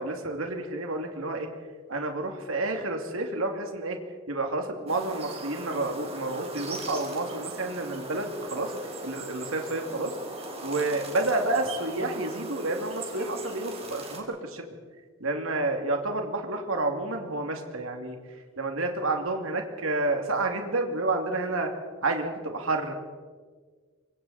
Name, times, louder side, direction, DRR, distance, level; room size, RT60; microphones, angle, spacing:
voice 1, 0.0-1.5 1.9-4.0 4.3-8.7 9.0-10.1 10.6-14.6 15.2-18.2 18.6-21.7 22.0-22.9, right 2 dB, 75° right, 3 dB, 2.7 m, -29 dB
sound 1, 4.9-14.2, right 2 dB, 30° right, 3.7 m, -39 dB
27.0 x 24.0 x 4.3 m, 1.5 s
head